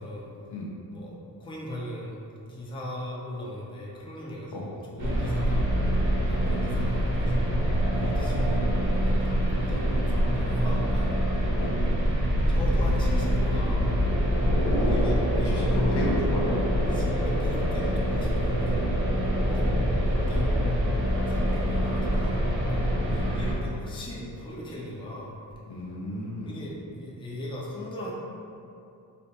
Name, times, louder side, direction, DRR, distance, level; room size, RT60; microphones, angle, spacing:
voice 1, 0.0-0.3 0.9-2.2 2.5-5.6 6.3-7.5 8.0-11.5 12.5-13.8 14.7-16.1 16.9-18.9 19.5-22.4 23.1-25.4 26.4-28.1, left 1 dB, 10° left, -4 dB, 0.5 m, -38 dB
sound 1, 5.0-23.5, equal, 40° right, 0.8 m, -25 dB
voice 2, 14.5-15.2 15.4-17.0 19.5-19.7 23.1-23.3 25.7-26.6, left 1 dB, 65° left, -4 dB, 0.7 m, -32 dB
3.3 x 2.1 x 2.8 m, 2.6 s
cardioid pair, 60°, 44 cm